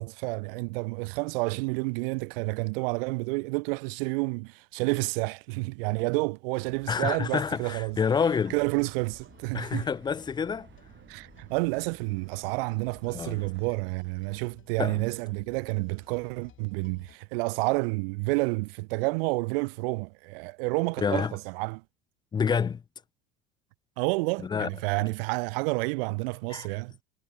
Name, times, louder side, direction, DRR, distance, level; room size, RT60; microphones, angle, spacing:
voice 1, 0.0-8.0 8.5-9.9 11.1-21.8 24.0-26.9, right 28 dB, 70° right, 0.7 m, -30 dB
sound 1, 6.6-17.2, left 9 dB, 40° left, 7.2 m, -58 dB
voice 2, 6.9-8.5 9.5-10.7 13.1-13.4 14.8-15.0 21.0-21.3 22.3-22.8 24.5-24.7 26.5-26.7, left 6 dB, 15° left, 0.3 m, -27 dB
sound 2, 8.1-13.8, right 10 dB, 40° right, 2.1 m, -53 dB
hypercardioid pair, 80°, 29 cm